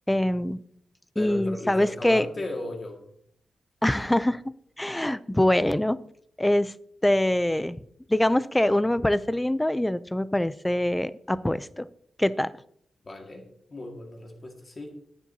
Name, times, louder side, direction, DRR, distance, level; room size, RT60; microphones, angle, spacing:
voice 1, 0.1-0.6 1.2-2.3 3.8-4.4 4.8-6.0 6.4-6.7 7.0-7.8 8.1-11.9 12.2-12.5, left 1 dB, 10° left, 16 dB, 0.4 m, -24 dB
voice 2, 1.2-3.0 13.0-14.9, left 2 dB, 35° left, 2 dB, 1.8 m, -37 dB
21.5 x 7.4 x 2.7 m, 0.68 s
wide cardioid pair, 125°, 0 cm